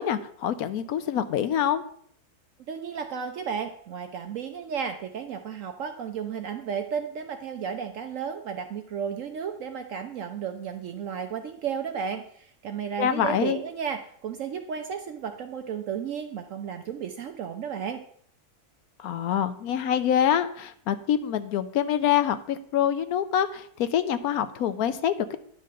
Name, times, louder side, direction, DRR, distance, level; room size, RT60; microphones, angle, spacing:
voice 1, 0.0-1.8 13.0-13.6 19.0-25.4, left 9 dB, 70° left, 11 dB, 1.1 m, -25 dB
voice 2, 2.7-18.0, right 7 dB, 65° right, 6 dB, 0.9 m, -33 dB
10.5 x 3.8 x 6.5 m, 0.62 s
omnidirectional pair, 1.7 m